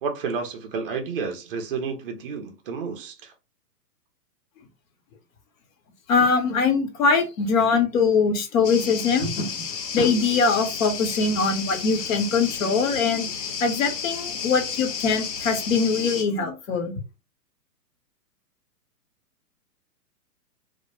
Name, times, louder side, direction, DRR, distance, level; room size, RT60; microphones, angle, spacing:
voice 1, 0.0-3.3, right 5 dB, 35° right, 0.5 m, -31 dB
voice 2, 6.1-9.6 9.9-13.3 13.6-16.9, left 5 dB, 55° left, 0.9 m, -22 dB
sound 1, 8.6-16.2, left 6 dB, 85° left, 1.0 m, -32 dB
2.2 x 2.0 x 2.9 m
hypercardioid pair, 140°, 48 cm